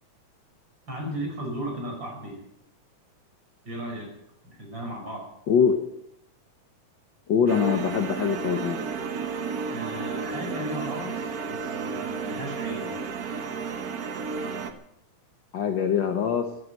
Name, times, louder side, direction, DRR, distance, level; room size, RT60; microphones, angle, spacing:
voice 1, 0.9-2.4 3.6-4.2 4.4-5.3 9.7-13.0, equal, 35° right, 0 dB, 6.0 m, -36 dB
voice 2, 5.5-5.9 7.3-8.8 15.5-16.6, left 7 dB, 65° left, 7 dB, 1.1 m, -23 dB
sound 1, 7.5-14.7, right 5 dB, 85° right, 0.8 m, -32 dB
14.0 x 13.0 x 7.9 m, 0.80 s
omnidirectional pair, 3.5 m